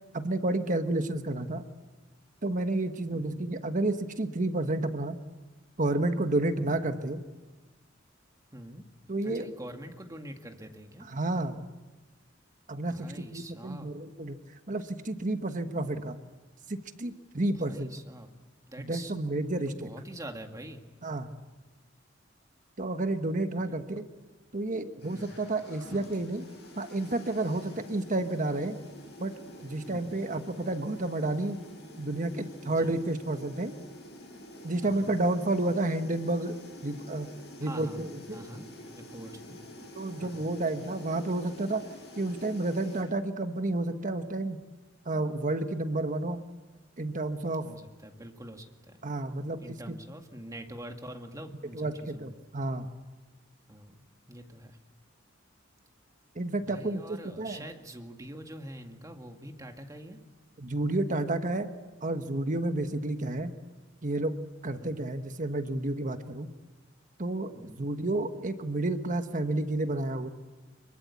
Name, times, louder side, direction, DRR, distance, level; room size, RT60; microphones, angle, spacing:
voice 1, 0.1-1.7 2.4-5.2 5.8-7.2 9.1-9.4 11.1-11.7 12.7-14.4 14.7-16.2 16.7-17.9 18.8-19.9 21.0-21.3 22.8-24.1 24.5-26.4 26.8-28.8 29.2-29.3 29.6-31.6 32.0-33.7 34.6-36.6 36.8-37.3 37.6-38.5 40.0-41.8 42.2-44.6 45.0-46.4 47.0-47.7 49.0-50.0 51.7-52.9 56.3-57.6 60.6-61.7 62.0-63.5 64.0-64.3 64.6-66.5 67.2-70.3, right 2 dB, 45° right, 8 dB, 1.3 m, -30 dB
voice 2, 8.5-8.9 9.2-11.1 12.9-13.9 17.5-18.3 18.7-19.1 19.7-20.8 23.6-23.8 25.1-25.4 27.7-27.8 29.9-30.1 32.6-32.9 34.8-35.2 37.6-39.6 40.2-40.5 47.6-49.0 49.6-52.4 53.7-53.9 54.3-54.8 56.6-60.2 64.8-65.0 67.5-67.9, right 1 dB, 20° right, 4 dB, 2.1 m, -45 dB
sound 1, 25.0-43.0, left 1 dB, 55° left, 7.9 m, -48 dB
25.5 x 23.0 x 8.4 m, 1.2 s
head